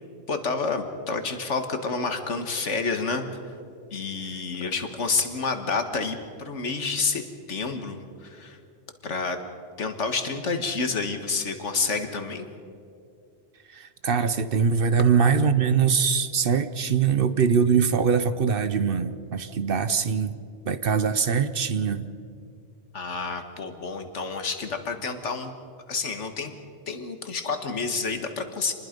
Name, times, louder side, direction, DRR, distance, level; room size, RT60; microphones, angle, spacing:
voice 1, 0.3-3.3 3.9-7.2 7.5-8.6 9.0-9.4 9.8-12.5 22.9-25.5 25.9-26.5 26.9-28.7, left 4 dB, 75° left, 7 dB, 1.9 m, -29 dB
voice 2, 13.7-20.3 20.6-22.1, right 6 dB, 55° right, 12 dB, 0.9 m, -22 dB
27.5 x 20.5 x 5.3 m, 2.4 s
omnidirectional pair, 1.2 m